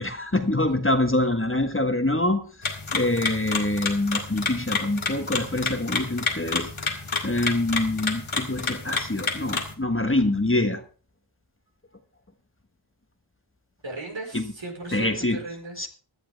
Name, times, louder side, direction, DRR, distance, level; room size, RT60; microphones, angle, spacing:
voice 1, 0.0-2.4 2.9-6.7 7.2-10.8 14.3-14.4 14.9-15.4 15.8-15.9, left 2 dB, 25° left, 7 dB, 1.5 m, -25 dB
sound 1, 2.6-9.7, left 4 dB, 90° left, 2.1 m, -30 dB
voice 2, 13.8-15.9, right 2 dB, 70° right, 1 dB, 4.7 m, -37 dB
16.5 x 11.5 x 3.5 m, 0.40 s
wide cardioid pair, 45°, 47 cm